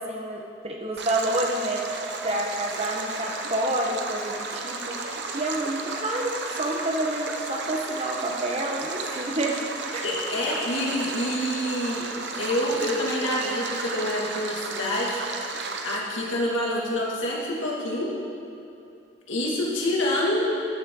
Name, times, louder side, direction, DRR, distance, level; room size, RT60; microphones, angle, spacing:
voice 1, 0.0-1.8 2.2-6.3 6.6-9.6 9.9-10.1, right 1 dB, 30° right, 0 dB, 1.3 m, -28 dB
Stream, 1.0-16.0, right 3 dB, 60° right, 0.9 m, -34 dB
voice 2, 10.0-15.2 15.5-18.1 19.3-20.5, left 1 dB, 85° left, -4 dB, 2.3 m, -27 dB
14.0 x 11.0 x 3.9 m, 2.7 s
head